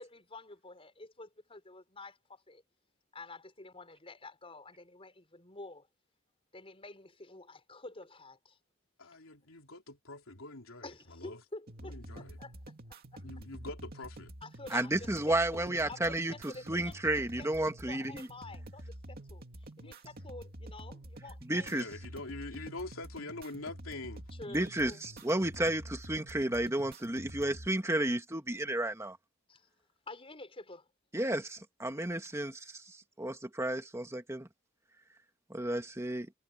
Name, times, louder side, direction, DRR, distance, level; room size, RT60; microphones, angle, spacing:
voice 1, 0.0-2.6 3.1-5.9 6.5-8.6 10.8-12.8 13.1-13.2 14.4-19.4 19.8-21.8 24.3-25.0 29.5-29.7 30.1-30.9, left 2 dB, 25° left, 5.3 m, -49 dB
voice 2, 9.0-11.4 11.8-12.4 13.2-14.3 19.8-19.9 21.6-24.3, left 2 dB, 80° left, 3.5 m, -44 dB
sound 1, 11.7-27.7, right 1 dB, 50° right, 2.5 m, -48 dB
voice 3, 14.7-16.3 16.7-18.3 21.4-21.8 24.5-29.2 31.1-32.6 33.2-34.5 35.5-36.3, right 1 dB, 15° right, 1.9 m, -32 dB
head